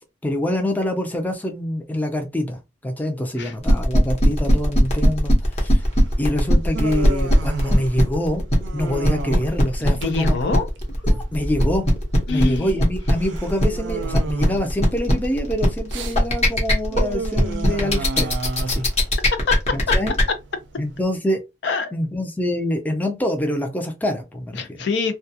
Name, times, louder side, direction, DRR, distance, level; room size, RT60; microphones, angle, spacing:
voice 1, 0.2-5.8 6.2-8.4 8.7-10.4 11.0-11.8 12.3-18.9 19.7-20.1 20.8-21.4 21.9-24.6, left 1 dB, 10° left, 0.4 m, -25 dB
sound 1, 3.6-20.2, equal, 35° left, 0.9 m, -19 dB
Human voice, 5.8-21.0, right 3 dB, 70° right, 0.4 m, -34 dB
voice 2, 10.0-10.7 12.3-12.7 19.3-19.9 21.6-21.9 24.5-25.1, left 4 dB, 65° left, 0.5 m, -25 dB
2.3 x 2.3 x 2.7 m
head